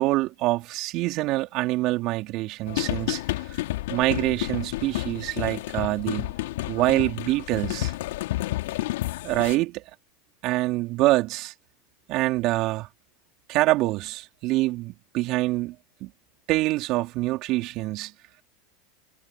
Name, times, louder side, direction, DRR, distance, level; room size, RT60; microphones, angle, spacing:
voice 1, 0.0-3.2 3.5-3.6 3.9-6.3 6.7-7.9 9.2-9.8 10.4-11.5 12.1-12.9 13.5-16.1 16.5-18.1, right 19 dB, 55° right, 3.5 m, -25 dB
sound 1, 2.7-9.6, left 17 dB, 70° left, 3.0 m, -30 dB
hypercardioid pair, 90°, 0 cm